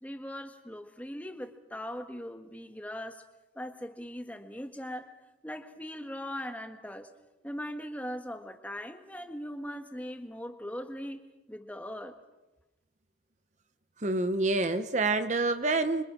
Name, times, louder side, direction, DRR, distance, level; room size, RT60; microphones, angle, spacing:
voice 1, 0.0-3.2 3.5-5.1 5.4-7.1 7.4-11.2 11.5-12.2, equal, 10° left, 7 dB, 1.6 m, -40 dB
voice 2, 14.0-16.0, right 3 dB, 40° right, 10 dB, 0.9 m, -27 dB
27.0 x 24.5 x 6.1 m, 1.0 s
head